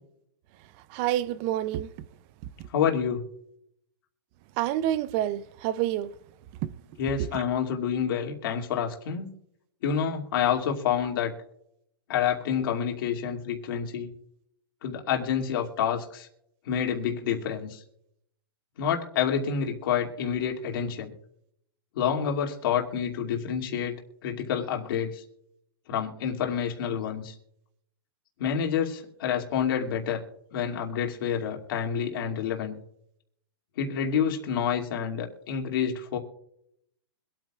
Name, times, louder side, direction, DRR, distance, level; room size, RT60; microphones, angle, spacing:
voice 1, 0.9-1.9 4.6-6.1, right 13 dB, 30° right, 0.5 m, -27 dB
voice 2, 2.7-3.2 7.0-9.3 9.8-11.3 12.1-14.1 14.8-16.3 16.7-17.8 18.8-21.1 22.0-25.2 25.9-27.3 28.4-30.2 30.5-32.7 33.8-36.2, left 8 dB, 50° left, 2.5 m, -28 dB
25.0 x 8.9 x 2.4 m
hypercardioid pair, 155°, 14 cm